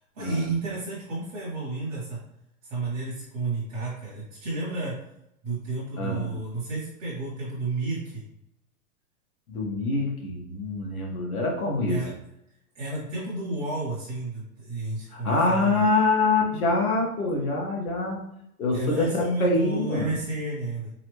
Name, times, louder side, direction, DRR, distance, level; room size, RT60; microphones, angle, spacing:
voice 1, 0.1-2.2 2.6-4.9 5.4-8.2 11.9-12.1 12.7-15.8 18.7-20.9, right 2 dB, 5° right, -9 dB, 0.6 m, -31 dB
voice 2, 6.0-6.3 9.5-12.0 15.1-18.2 18.6-20.1, left 2 dB, 70° left, 0 dB, 1.5 m, -25 dB
3.9 x 3.1 x 3.1 m, 0.80 s
hypercardioid pair, 180°, 44 cm